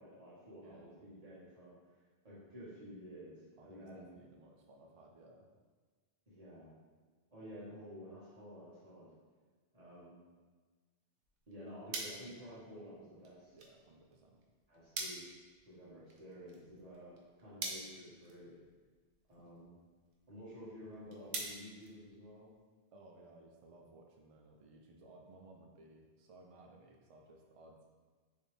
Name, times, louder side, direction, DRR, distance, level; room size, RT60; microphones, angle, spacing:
voice 1, 0.0-4.1 6.3-6.7 7.3-9.1 9.7-10.2 11.5-13.5 14.7-15.3 15.6-18.6 19.3-19.7 20.3-22.5, equal, 35° right, -9 dB, 1.6 m, -52 dB
voice 2, 0.6-0.9 3.6-5.5 13.5-14.4 16.5-16.9 19.4-19.7 22.9-27.8, right 2 dB, 65° right, 1 dB, 0.3 m, -59 dB
sound 1, 11.2-22.6, right 3 dB, 90° right, 1.0 m, -48 dB
4.5 x 3.2 x 3.2 m, 1.4 s
omnidirectional pair, 1.1 m